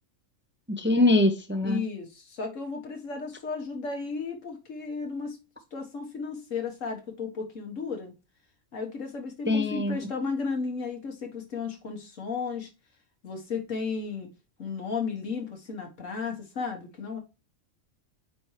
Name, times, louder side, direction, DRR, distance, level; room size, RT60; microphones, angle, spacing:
voice 1, 0.7-1.8 9.5-10.0, left 2 dB, 15° right, 6 dB, 0.5 m, -23 dB
voice 2, 1.6-5.4 5.7-8.1 8.7-12.7 13.2-14.3 14.6-17.2, left 5 dB, 90° left, 3 dB, 1.8 m, -34 dB
8.7 x 4.4 x 3.2 m, 0.30 s
omnidirectional pair, 1.3 m